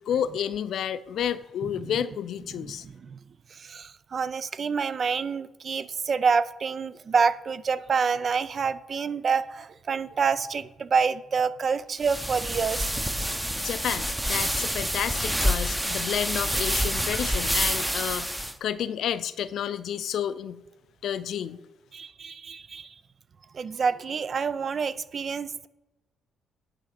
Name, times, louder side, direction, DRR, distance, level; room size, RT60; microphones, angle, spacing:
voice 1, 0.0-2.8 13.6-20.6 21.0-21.6, left 9 dB, 70° left, 14 dB, 0.5 m, -30 dB
voice 2, 1.6-2.0 2.6-3.2 3.5-12.9 21.9-22.9 23.5-25.7, right 5 dB, 45° right, 15 dB, 0.4 m, -27 dB
sound 1, 12.0-18.5, equal, 5° right, 0.7 m, -28 dB
9.8 x 3.9 x 6.5 m, 1.0 s
cardioid pair, 90°, 0 cm